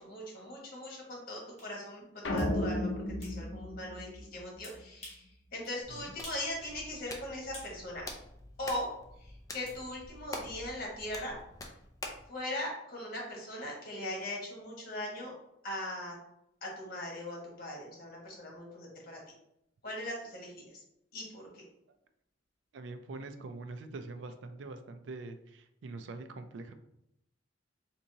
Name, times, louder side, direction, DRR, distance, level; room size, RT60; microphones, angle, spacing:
voice 1, 0.0-5.2 5.5-8.0 8.6-8.9 9.2-11.4 12.3-15.3 15.6-16.1 16.6-19.2 19.8-20.7 21.1-21.6, left 1 dB, 55° left, -2 dB, 1.3 m, -40 dB
sound 1, 1.6-1.7 2.4-2.5 3.2-3.4 4.6-5.3 5.6-5.8 6.2-6.5 6.8-7.8 8.7-8.8 9.7-9.8, left 1 dB, 35° left, 1.4 m, -49 dB
sound 2, 2.2-4.7, left 1 dB, 75° left, 0.6 m, -34 dB
Hands, 5.8-12.3, left 2 dB, 20° left, 0.4 m, -46 dB
voice 2, 22.7-26.7, right 3 dB, 75° right, 8 dB, 0.4 m, -44 dB
3.6 x 2.9 x 2.7 m, 0.80 s
head